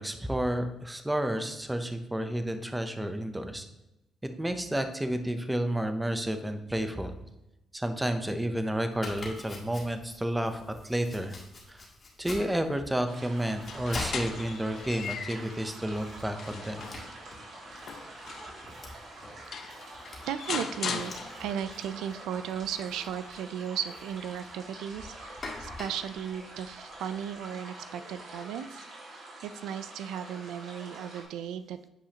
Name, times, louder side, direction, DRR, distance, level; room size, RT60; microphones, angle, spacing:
voice 1, 0.0-3.7 4.2-7.2 7.7-11.4 11.7-11.8 12.2-16.9, right 1 dB, 10° right, 8 dB, 0.7 m, -31 dB
Domestic sounds home sounds, 8.9-27.4, left 2 dB, 40° left, 1.7 m, -46 dB
sound 1, 13.1-31.2, right 2 dB, 65° right, 2.5 m, -46 dB
sound 2, 13.7-15.6 16.1-18.7 19.2-19.3 19.5-21.7, left 6 dB, 60° left, 0.6 m, -39 dB
voice 2, 20.3-21.1 21.4-28.8 29.4-31.9, right 9 dB, 90° right, 11 dB, 0.3 m, -36 dB
8.7 x 4.8 x 2.9 m, 0.92 s
cardioid pair, 90°, 0 cm